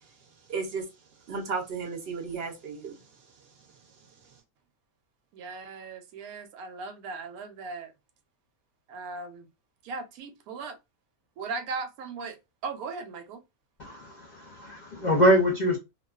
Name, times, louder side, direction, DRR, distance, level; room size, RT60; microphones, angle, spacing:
voice 1, 0.0-4.4, right 4 dB, 60° right, 0.7 m, -37 dB
voice 2, 5.3-7.9 8.9-9.5 9.8-10.8 11.4-12.4 12.6-13.4, right 4 dB, 90° right, 1.1 m, -38 dB
voice 3, 13.8-15.8, equal, 65° left, 0.4 m, -24 dB
2.4 x 2.3 x 2.3 m
omnidirectional pair, 1.5 m